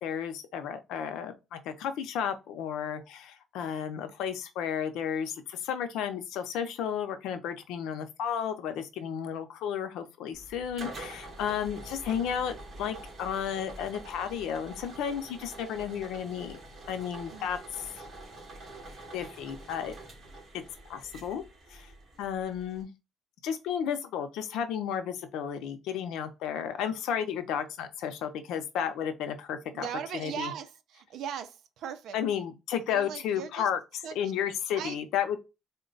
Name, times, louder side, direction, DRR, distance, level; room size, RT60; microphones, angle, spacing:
voice 1, 0.0-16.6 16.9-18.0 19.1-19.9 20.9-21.4 21.7-21.9 22.2-22.9 23.4-29.9 30.1-30.5 32.1-33.8 34.2-35.4, left 8 dB, 85° left, 0.6 m, -33 dB
sound 1, 10.3-22.8, right 2 dB, 35° right, 1.9 m, -46 dB
voice 2, 17.3-17.6 29.7-32.2 32.9-33.7 34.0-34.2 34.7-35.0, right 9 dB, 65° right, 0.5 m, -39 dB
3.8 x 2.2 x 3.9 m
cardioid pair, 170°, 0 cm